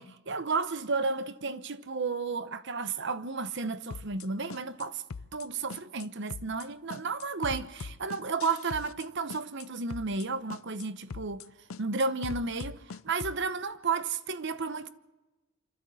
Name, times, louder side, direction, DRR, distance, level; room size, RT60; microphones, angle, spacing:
voice 1, 0.0-5.0 5.3-11.5 11.8-14.9, right 4 dB, 60° right, 1.0 m, -32 dB
sound 1, 3.9-4.3 4.5-4.9 5.1-5.5 5.7-6.1 6.3-6.7 6.9-9.1 9.3-9.7 9.9-10.3 10.5-10.9 11.1-11.5 11.7-13.4, left 4 dB, 85° left, 0.6 m, -41 dB
26.0 x 12.5 x 7.8 m
head